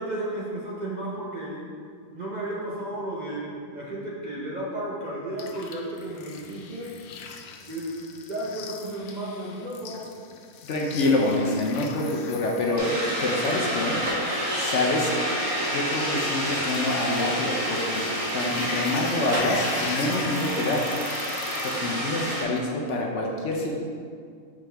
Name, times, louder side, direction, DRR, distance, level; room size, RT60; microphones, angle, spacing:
voice 1, 0.0-1.7 2.1-7.0 7.7-10.1, right 1 dB, 40° right, -6 dB, 0.7 m, -33 dB
sound 1, 5.4-22.0, left 5 dB, 85° left, 1.1 m, -41 dB
voice 2, 10.7-14.0 14.6-15.1 15.7-20.9 21.6-23.8, left 2 dB, 60° left, -1 dB, 0.9 m, -26 dB
sound 2, 12.8-22.4, equal, 60° right, 1.7 m, -28 dB
6.2 x 5.0 x 3.3 m, 2.2 s
omnidirectional pair, 1.5 m